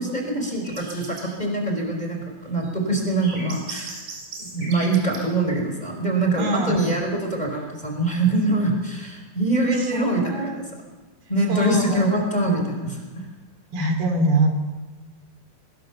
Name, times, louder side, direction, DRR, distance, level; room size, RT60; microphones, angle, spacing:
voice 1, 0.0-4.0 4.4-10.6 11.3-13.3, right 2 dB, 10° left, 1 dB, 4.4 m, -24 dB
sound 1, 0.6-1.3 2.4-5.2 7.3-7.6, right 3 dB, 40° right, 6.5 m, -38 dB
voice 2, 6.4-6.9 9.9-10.6 11.5-12.0 13.7-14.5, right 1 dB, 90° right, 5 dB, 4.9 m, -23 dB
24.0 x 20.5 x 7.1 m, 1.3 s
omnidirectional pair, 4.2 m